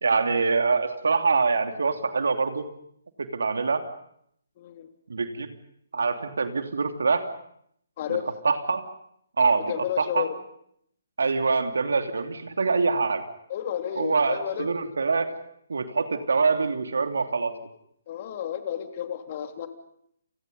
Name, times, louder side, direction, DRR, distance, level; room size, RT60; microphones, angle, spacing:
voice 1, 0.0-2.7 3.2-3.8 5.1-5.5 5.9-7.3 8.1-8.2 8.4-8.9 9.4-10.3 11.2-13.2 13.9-15.3 15.7-17.5, right 4 dB, 65° right, 6 dB, 3.0 m, -24 dB
voice 2, 4.6-4.9 8.0-8.3 9.7-10.3 13.5-14.7 18.1-19.7, left 10 dB, 35° left, 6 dB, 3.0 m, -31 dB
30.0 x 29.5 x 5.5 m, 0.71 s
figure-of-eight pair, 140°, 0 cm